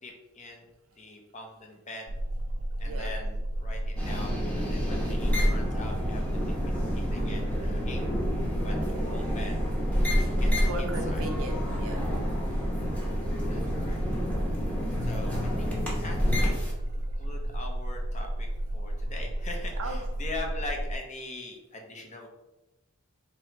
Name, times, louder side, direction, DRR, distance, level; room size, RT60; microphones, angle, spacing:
voice 1, 0.0-0.7 1.0-2.2 2.8-6.4 6.9-8.0 8.6-9.7 10.4-11.2 13.1-14.0 15.0-15.7 16.0-16.2 16.4-16.6 16.9-22.3, left 2 dB, 35° left, 2 dB, 0.7 m, -42 dB
sound 1, 2.1-21.0, right 1 dB, 30° right, 0.3 m, -32 dB
sound 2, 4.0-16.7, equal, 5° left, 0.9 m, -29 dB
voice 2, 10.6-12.3 19.8-20.0, right 1 dB, 75° right, 3 dB, 0.7 m, -38 dB
3.0 x 2.9 x 4.5 m, 0.97 s
head